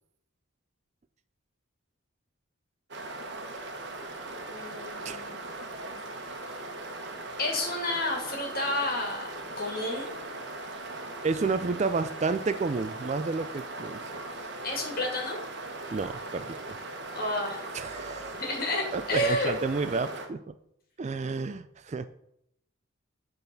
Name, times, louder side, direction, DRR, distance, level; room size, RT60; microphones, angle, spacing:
sound 1, 2.9-20.3, right 2 dB, 55° right, 1.2 m, -39 dB
voice 1, 4.5-5.4 5.9-6.0 6.2-6.3 7.4-9.3 9.6-10.1 14.6-15.4 17.1-17.7 18.3-19.5, left 1 dB, 45° left, 1 dB, 2.4 m, -30 dB
voice 2, 11.2-14.1 15.9-16.8 17.7-18.3 18.9-20.5 21.0-22.1, right 4 dB, 35° right, 12 dB, 0.3 m, -31 dB
9.1 x 4.0 x 6.9 m, 0.76 s
head